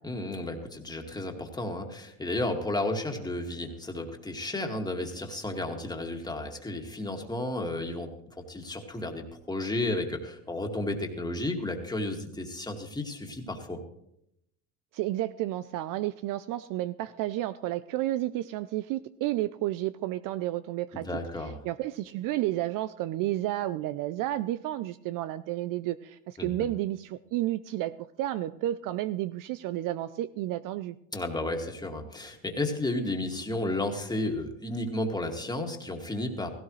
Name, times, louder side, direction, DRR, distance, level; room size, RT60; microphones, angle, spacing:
voice 1, 0.0-13.8 20.9-21.6 26.4-26.7 31.1-36.5, left 2 dB, 10° left, 3 dB, 2.1 m, -33 dB
voice 2, 14.9-21.1 21.6-31.0, right 14 dB, 50° right, 15 dB, 0.5 m, -31 dB
17.0 x 16.0 x 3.2 m, 0.77 s
supercardioid pair, 100°, 42 cm